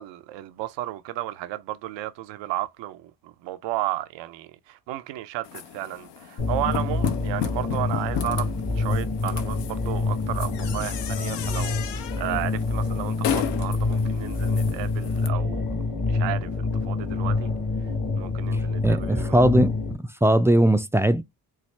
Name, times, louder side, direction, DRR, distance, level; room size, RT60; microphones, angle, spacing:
voice 1, 0.0-8.5 8.8-15.7 16.1-17.5 18.1-19.4, right 15 dB, 80° right, 0.5 m, -33 dB
sound 1, 5.4-15.3, left 9 dB, 70° left, 0.6 m, -34 dB
sound 2, 6.4-19.9, left 3 dB, 55° left, 1.5 m, -27 dB
voice 2, 18.8-19.8 20.2-21.2, right 1 dB, 5° right, 0.3 m, -19 dB
4.6 x 2.0 x 3.1 m
supercardioid pair, 55°, 43 cm